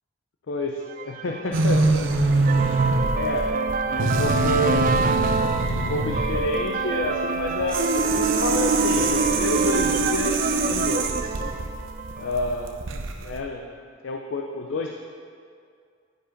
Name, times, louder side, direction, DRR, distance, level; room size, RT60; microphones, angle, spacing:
voice 1, 0.5-2.1 2.5-3.5 3.9-5.0 5.7-11.4 12.2-13.7 14.0-15.0, left 2 dB, 80° left, 3 dB, 0.5 m, -29 dB
sound 1, 0.9-12.7, right 4 dB, 45° right, 0.4 m, -27 dB
sound 2, 1.5-13.4, right 3 dB, 85° right, 0.7 m, -24 dB
10.5 x 5.1 x 5.0 m, 2.3 s
head